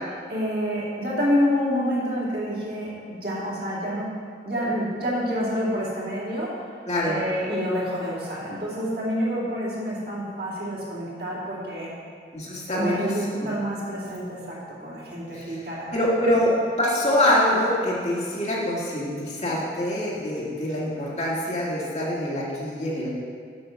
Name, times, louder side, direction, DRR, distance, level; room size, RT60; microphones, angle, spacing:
voice 1, 0.3-4.1 4.4-6.5 7.0-11.9 12.7-16.1, equal, 60° right, -7 dB, 2.6 m, -28 dB
voice 2, 6.9-7.2 12.3-13.1 13.4-13.5 15.3-15.6 15.9-23.1, left 1 dB, 40° left, -6 dB, 1.9 m, -24 dB
7.8 x 6.8 x 5.8 m, 2.1 s
head